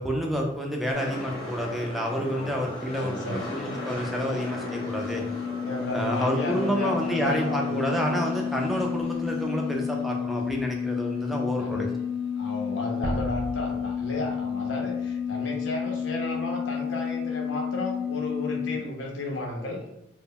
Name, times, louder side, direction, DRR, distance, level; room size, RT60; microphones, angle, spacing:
voice 1, 0.0-5.3 5.9-11.9, equal, ahead, -1 dB, 0.3 m, -29 dB
sound 1, 0.9-13.0 13.2-13.3, left 1 dB, 20° left, 0.7 m, -39 dB
voice 2, 2.4-3.4 5.6-7.8 11.6-11.9 12.4-19.8, left 1 dB, 85° left, 1 dB, 0.5 m, -34 dB
sound 2, 2.6-18.8, left 8 dB, 60° right, 0.7 m, -31 dB
sound 3, 13.0-15.9, right 1 dB, 80° right, 0.3 m, -36 dB
2.1 x 2.0 x 3.5 m, 0.85 s
head